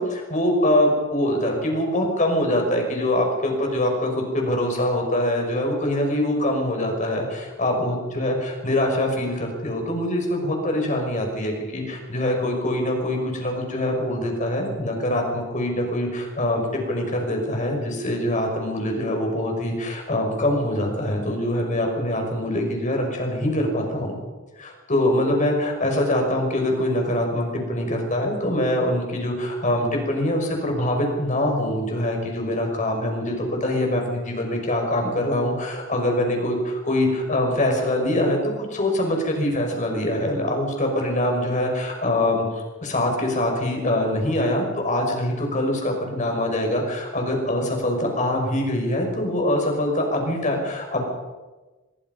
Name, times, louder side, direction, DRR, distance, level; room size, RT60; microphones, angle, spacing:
voice 1, 0.0-24.2 24.6-51.0, left 1 dB, 40° left, 2 dB, 6.1 m, -24 dB
24.0 x 23.0 x 5.5 m, 1.2 s
head